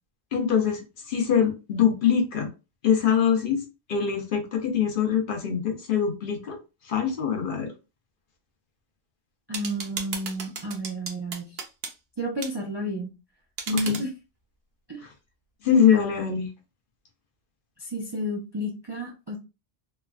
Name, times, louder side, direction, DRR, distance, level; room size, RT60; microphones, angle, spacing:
voice 1, 0.3-2.5 2.8-3.6 3.9-6.6 6.8-7.7 13.7-14.0 15.0-15.1 15.6-16.5, left 8 dB, 60° left, 4 dB, 0.7 m, -23 dB
voice 2, 9.5-11.6 12.2-13.1 13.7-14.1 14.9-15.0 17.8-19.4, equal, 40° right, -1 dB, 0.3 m, -31 dB
sound 1, 9.5-11.9 12.4-12.5 13.6-14.1, right 5 dB, 65° right, 0.8 m, -35 dB
3.1 x 2.1 x 2.3 m, 0.29 s
omnidirectional pair, 1.1 m